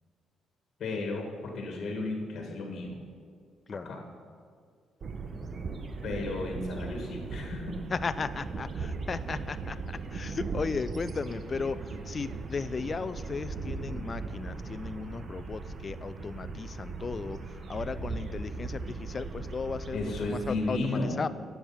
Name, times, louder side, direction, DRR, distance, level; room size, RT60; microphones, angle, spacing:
voice 1, 0.8-3.0 3.7-4.0 6.0-7.8 19.9-21.2, left 2 dB, 60° left, 1 dB, 1.7 m, -34 dB
sound 1, 5.0-20.7, right 4 dB, 45° right, 0.9 m, -38 dB
voice 2, 7.9-21.3, left 4 dB, 35° left, 14 dB, 0.4 m, -35 dB
9.9 x 7.2 x 5.6 m, 2.1 s
cardioid pair, 90°, 0 cm